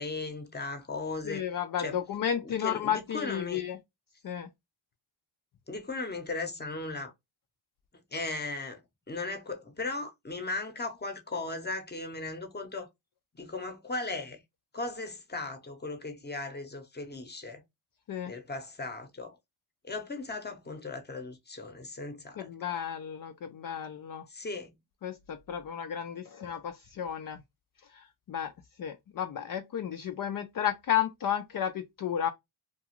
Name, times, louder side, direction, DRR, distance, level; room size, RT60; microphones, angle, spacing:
voice 1, 0.0-1.4 1.8-2.0 2.6-3.6 5.7-7.1 8.1-8.8 9.1-12.9 13.3-14.4 14.7-17.6 18.3-19.4 19.8-22.5 24.3-24.7, left 3 dB, 20° left, 0.8 m, -37 dB
voice 2, 1.2-3.8 4.2-4.5 18.1-18.3 22.4-24.3 25.0-27.4 27.8-28.5 28.8-32.3, left 9 dB, 50° left, 0.4 m, -33 dB
2.4 x 2.3 x 2.9 m
cardioid pair, 60°, 46 cm